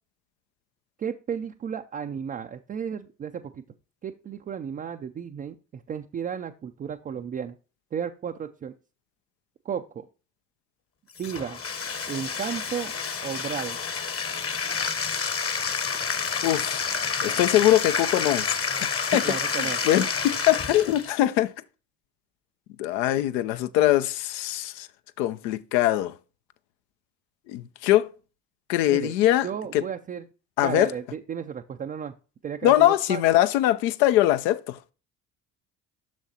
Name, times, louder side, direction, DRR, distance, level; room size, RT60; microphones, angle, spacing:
voice 1, 1.0-3.6 4.0-7.6 7.9-8.7 9.7-10.0 11.2-11.6 12.1-12.9 13.2-13.8 19.1-19.8 28.9-29.1 29.4-30.2 30.6-32.1 32.4-33.2, right 8 dB, 20° right, 0.3 m, -33 dB
Bathtub (filling or washing), 11.2-21.2, left 5 dB, 25° left, 0.9 m, -29 dB
voice 2, 16.4-16.9 17.2-18.6 19.1-19.2 19.8-21.5 22.8-24.9 25.2-26.1 27.5-28.1 28.7-29.5 29.7-29.8 30.6-30.9 32.6-34.9, left 14 dB, 80° left, 0.6 m, -22 dB
7.4 x 6.3 x 2.8 m
hypercardioid pair, 55°, 50 cm